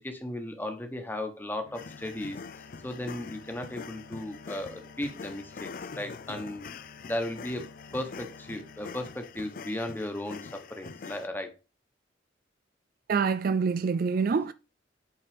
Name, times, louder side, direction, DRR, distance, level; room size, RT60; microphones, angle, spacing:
voice 1, 0.0-2.4 2.8-6.6 7.0-7.6 7.9-11.5, left 1 dB, 10° left, 1.3 m, -36 dB
Bowed string instrument, 1.6-9.8, left 3 dB, 80° left, 0.9 m, -52 dB
sound 1, 1.7-11.3, left 5 dB, 45° left, 0.4 m, -44 dB
voice 2, 13.1-14.5, right 5 dB, 50° right, 0.4 m, -26 dB
8.6 x 4.2 x 5.2 m
head